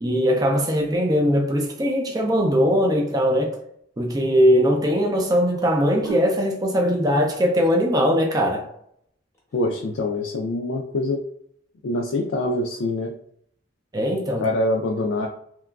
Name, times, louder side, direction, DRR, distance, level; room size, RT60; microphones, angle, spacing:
voice 1, 0.0-3.6 4.0-8.6 13.9-14.5, equal, 20° right, 0.4 m, -20 dB
sound 1, 1.2-1.5 2.4-3.5 5.7-8.2 9.3-9.9, right 3 dB, 15° left, 0.7 m, -41 dB
voice 2, 9.5-11.2 11.8-13.1 14.4-15.3, left 2 dB, 80° left, 0.3 m, -24 dB
2.9 x 2.3 x 2.2 m
head